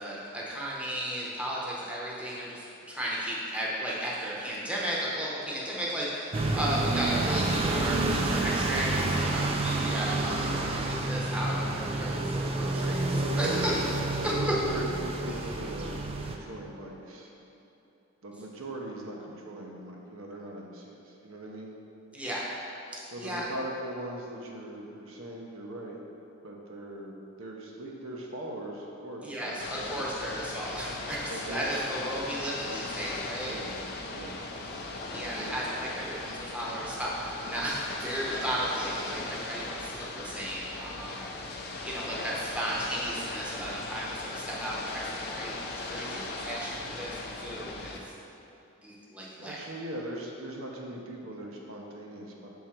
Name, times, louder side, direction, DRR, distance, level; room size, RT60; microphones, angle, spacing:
voice 1, 0.0-13.7 14.2-14.5 15.3-15.5 22.1-22.5 22.9-23.4 29.2-33.6 35.0-41.5 41.8-45.6 45.9-48.0 48.8-49.6, right 1 dB, 5° right, -6 dB, 0.8 m, -34 dB
sound 1, 6.3-16.4, right 2 dB, 25° right, 0.3 m, -29 dB
voice 2, 13.2-13.8 14.3-17.3 18.2-21.7 23.1-26.0 26.4-30.0 31.3-32.0 33.5-33.8 34.1-34.3 35.2-35.5 49.4-52.5, right 1 dB, 65° right, -1 dB, 0.7 m, -40 dB
Ocean / Boat Water vehicle, 29.6-48.0, left 2 dB, 50° left, 0.5 m, -38 dB
6.4 x 3.7 x 4.4 m, 2.8 s
head